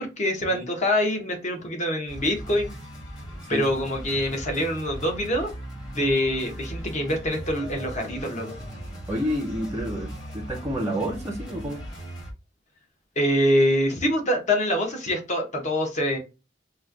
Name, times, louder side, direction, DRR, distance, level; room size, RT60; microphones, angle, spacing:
voice 1, 0.0-2.7 3.5-5.5 5.9-8.5 13.2-16.2, equal, 40° left, 1.0 m, -25 dB
sound 1, 2.1-12.3, equal, 25° left, 1.4 m, -38 dB
voice 2, 9.1-11.8, equal, 15° right, 0.5 m, -29 dB
3.1 x 2.2 x 3.7 m
head